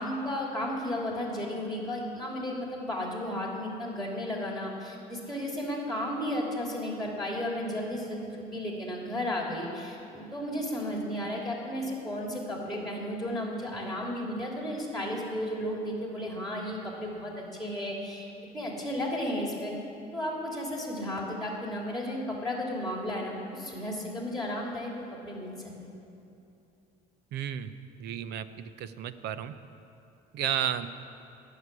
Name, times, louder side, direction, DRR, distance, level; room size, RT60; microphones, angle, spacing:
voice 1, 0.0-18.3 18.5-19.7 20.1-25.9, left 1 dB, ahead, -2 dB, 3.0 m, -34 dB
voice 2, 27.3-27.7 28.0-29.5 30.3-30.9, right 10 dB, 75° right, 12 dB, 0.7 m, -32 dB
19.0 x 6.6 x 9.8 m, 2.7 s
cardioid pair, 110°, 17 cm